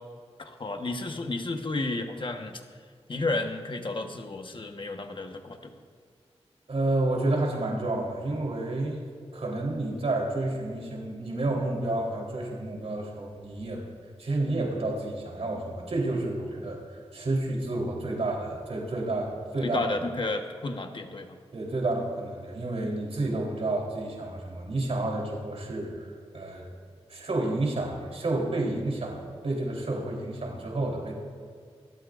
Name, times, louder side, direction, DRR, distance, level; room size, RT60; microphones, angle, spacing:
voice 1, 0.4-2.6 3.1-5.7 19.6-21.4, left 2 dB, 50° left, 5 dB, 1.2 m, -32 dB
voice 2, 6.7-9.0 9.3-13.8 14.2-20.0 21.5-26.1 26.3-26.6 27.1-31.2, right 2 dB, 70° right, -2 dB, 3.7 m, -30 dB
27.0 x 13.0 x 2.6 m, 2.1 s
wide cardioid pair, 80°, 11 cm